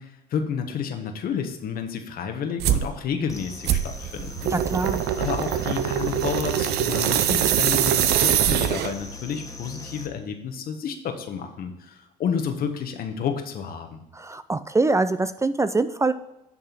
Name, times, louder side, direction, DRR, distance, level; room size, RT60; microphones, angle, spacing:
voice 1, 0.0-4.5 4.8-14.0, left 7 dB, 60° left, 6 dB, 1.2 m, -30 dB
sound 1, 2.6-2.9 3.6-9.1, right 11 dB, 70° right, 0.6 m, -23 dB
sound 2, 3.3-10.1, left 2 dB, 20° left, 1.6 m, -40 dB
voice 2, 4.5-5.0 14.2-16.1, right 3 dB, 15° right, 12 dB, 0.4 m, -24 dB
9.8 x 3.7 x 5.9 m, 0.95 s
hypercardioid pair, 60°, 17 cm